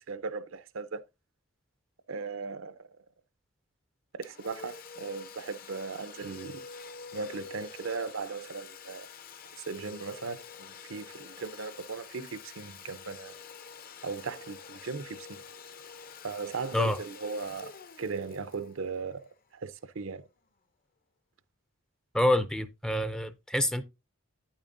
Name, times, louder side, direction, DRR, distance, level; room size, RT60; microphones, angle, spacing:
voice 1, 0.1-1.0 2.1-2.9 4.1-6.7 7.1-9.1 9.6-13.3 14.0-15.4 16.2-17.7 18.0-19.2 19.5-20.2, right 4 dB, 70° right, 0.6 m, -37 dB
Domestic sounds home sounds, 4.2-19.7, left 5 dB, 45° left, 0.7 m, -48 dB
voice 2, 22.1-23.8, left 1 dB, 5° left, 0.4 m, -27 dB
9.3 x 8.8 x 2.6 m
head